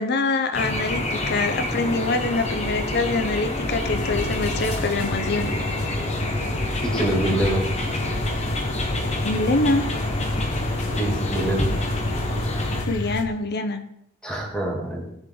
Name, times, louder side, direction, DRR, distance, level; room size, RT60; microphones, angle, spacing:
voice 1, 0.0-5.5 9.2-9.9 12.8-13.8, left 3 dB, 50° left, 9 dB, 0.8 m, -25 dB
sound 1, 0.5-12.8, left 1 dB, 30° left, 1.5 m, -28 dB
sound 2, 3.9-13.3, left 1 dB, 80° left, 1.1 m, -30 dB
voice 2, 6.8-7.7 11.0-11.7 14.2-15.1, right 1 dB, 5° left, -2 dB, 2.6 m, -25 dB
17.0 x 6.5 x 3.9 m, 0.81 s
head